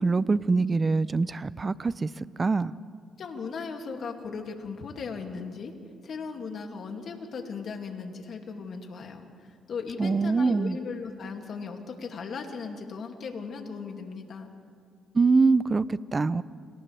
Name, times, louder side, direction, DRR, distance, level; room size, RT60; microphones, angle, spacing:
voice 1, 0.0-2.7 10.0-10.8 15.1-16.4, right 4 dB, 30° right, 17 dB, 0.5 m, -24 dB
voice 2, 3.2-5.7 6.0-14.5, left 5 dB, 60° left, 3 dB, 2.4 m, -37 dB
29.5 x 26.5 x 3.4 m, 2.2 s
cardioid pair, 90°, 0 cm